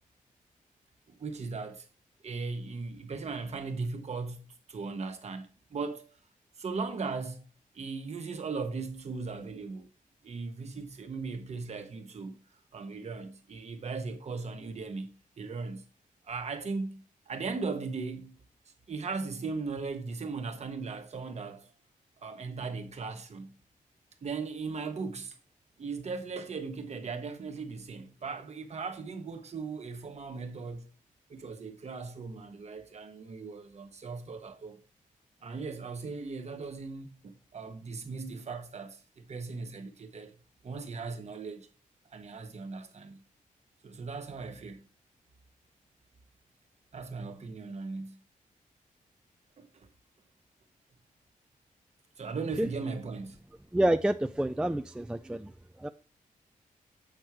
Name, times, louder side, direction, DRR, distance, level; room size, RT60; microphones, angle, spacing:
voice 1, 1.1-1.9 2.2-6.2 6.6-7.4 7.7-9.9 10.2-12.4 12.7-15.8 16.2-18.4 18.9-21.7 22.2-23.5 24.2-25.4 25.8-30.9 31.3-34.8 35.4-40.3 40.6-41.7 42.1-43.2 43.8-44.8 46.9-48.2 49.6-49.9 52.2-53.4, right 4 dB, 50° right, 1.2 m, -38 dB
voice 2, 53.7-55.5 55.8-55.9, right 1 dB, 5° right, 0.3 m, -28 dB
7.9 x 4.5 x 4.8 m
wide cardioid pair, 120°, 14 cm